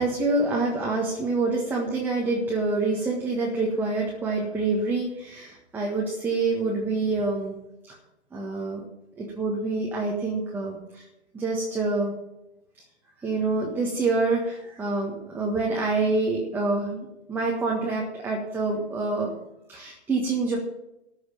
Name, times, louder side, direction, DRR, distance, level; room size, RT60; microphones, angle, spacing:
voice 1, 0.0-7.5 8.3-8.8 9.2-11.0 11.3-12.1 13.2-19.3 19.7-20.6, right 3 dB, 5° right, -2 dB, 1.5 m, -26 dB
14.0 x 6.5 x 9.2 m, 0.91 s
figure-of-eight pair, 130°, 34 cm